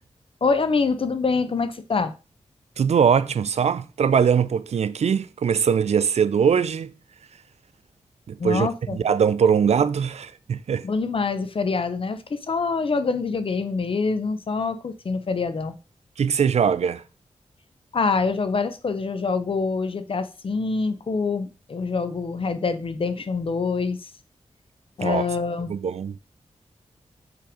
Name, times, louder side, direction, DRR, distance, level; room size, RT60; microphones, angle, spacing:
voice 1, 0.4-2.1 8.4-9.0 10.8-15.8 17.9-24.1 25.0-25.8, left 4 dB, 50° left, 0.6 m, -25 dB
voice 2, 2.8-6.9 8.3-10.9 16.2-17.0 25.0-25.2 25.7-26.2, right 7 dB, 70° right, 0.4 m, -21 dB
5.7 x 3.7 x 5.0 m
wide cardioid pair, 80°, 12 cm